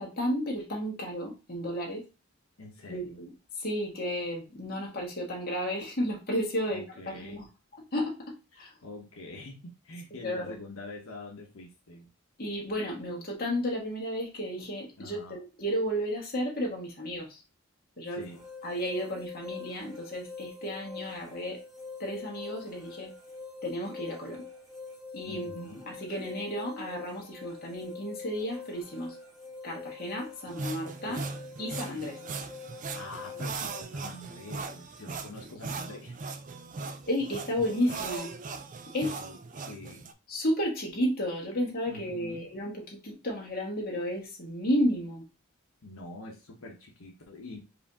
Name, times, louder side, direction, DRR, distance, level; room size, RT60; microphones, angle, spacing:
voice 1, 0.0-2.0 2.9-6.8 7.2-7.5 7.9-8.7 10.2-10.6 12.4-17.4 18.0-18.2 18.6-21.6 22.0-23.1 23.6-24.5 25.1-29.1 29.6-31.2 31.6-32.2 37.1-38.3 38.9-39.2 40.3-45.2, equal, 45° left, 1.4 m, -32 dB
voice 2, 2.6-3.2 6.7-7.4 8.5-12.1 15.0-15.4 18.1-18.4 25.2-25.8 31.0-31.3 32.9-36.1 39.0-40.1 41.9-42.4 45.8-47.6, left 2 dB, 80° left, 1.0 m, -45 dB
sound 1, 18.2-33.8, left 5 dB, ahead, 1.2 m, -45 dB
sound 2, 30.5-40.1, right 4 dB, 35° right, 0.4 m, -39 dB
4.9 x 2.7 x 3.6 m
head